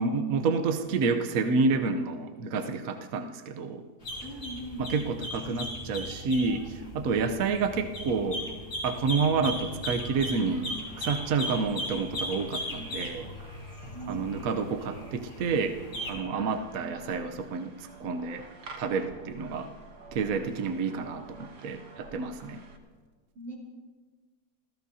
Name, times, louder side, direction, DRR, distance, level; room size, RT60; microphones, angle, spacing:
voice 1, 0.0-3.8 4.8-8.5 8.8-13.3 14.1-15.8 16.1-18.5 18.8-19.7 20.1-22.6, right 4 dB, 60° right, 6 dB, 1.2 m, -29 dB
sound 1, 4.0-16.1, left 1 dB, 30° left, 3.1 m, -38 dB
voice 2, 4.2-4.9 13.9-14.3 20.9-21.1 23.3-23.5, right 1 dB, 45° right, -4 dB, 3.6 m, -41 dB
sound 2, 10.1-22.8, right 3 dB, 85° right, 2.0 m, -49 dB
28.5 x 15.5 x 2.8 m, 1.5 s
omnidirectional pair, 1.8 m